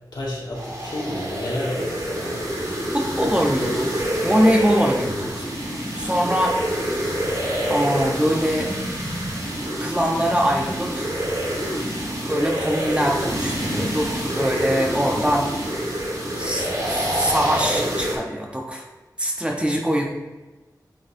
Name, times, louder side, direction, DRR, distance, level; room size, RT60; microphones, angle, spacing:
voice 1, 0.1-2.4, left 1 dB, 70° left, -4 dB, 1.5 m, -30 dB
sound 1, 0.5-18.1, right 1 dB, 55° right, 1.6 m, -27 dB
voice 2, 2.9-5.4 6.0-6.6 7.7-8.7 9.8-11.1 12.3-15.5 16.4-18.9 19.2-20.0, equal, 15° right, 0 dB, 0.9 m, -23 dB
8.9 x 4.0 x 2.7 m, 1.2 s
wide cardioid pair, 80°, 7 cm